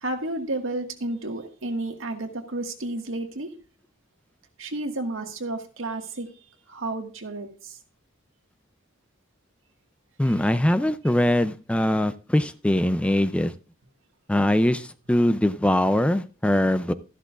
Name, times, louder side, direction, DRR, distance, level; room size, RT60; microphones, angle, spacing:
voice 1, 0.0-3.5 4.6-6.3 6.7-7.8 10.2-10.3, right 2 dB, 85° right, 4 dB, 1.7 m, -31 dB
voice 2, 10.2-13.5 14.3-16.9, left 1 dB, 5° left, 13 dB, 0.4 m, -22 dB
13.5 x 12.0 x 2.4 m, 0.37 s
head